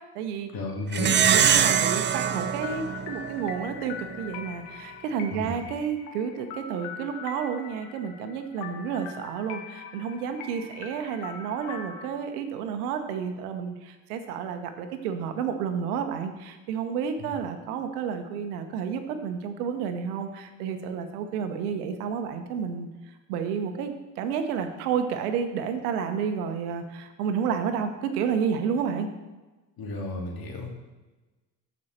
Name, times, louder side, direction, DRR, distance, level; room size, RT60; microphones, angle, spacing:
voice 1, 0.0-0.5 1.3-22.9 23.3-29.1, right 7 dB, 80° right, 7 dB, 1.2 m, -31 dB
voice 2, 0.5-1.2 5.3-5.6 17.2-17.3 29.8-30.8, left 2 dB, 50° left, 1 dB, 2.8 m, -33 dB
Plucked string instrument, 0.9-3.7, right 8 dB, 25° right, 0.5 m, -23 dB
sound 1, 1.3-12.1, left 7 dB, 65° left, 1.2 m, -42 dB
14.0 x 5.8 x 4.4 m, 1.2 s
hypercardioid pair, 80°, 45 cm